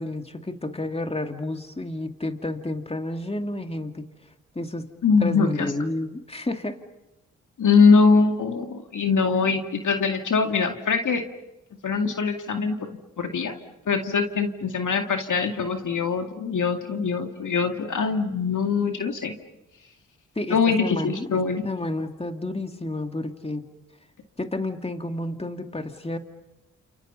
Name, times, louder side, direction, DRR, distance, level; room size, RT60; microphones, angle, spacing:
voice 1, 0.0-4.1 4.5-4.9 5.2-6.8 20.4-23.7 24.4-26.2, left 2 dB, 20° left, 6 dB, 2.5 m, -30 dB
voice 2, 5.0-5.7 7.6-11.2 11.8-12.8 13.2-13.5 13.9-19.3 20.5-21.6, left 5 dB, 65° left, 5 dB, 2.3 m, -22 dB
29.5 x 28.5 x 5.7 m, 0.95 s
supercardioid pair, 45°, 33 cm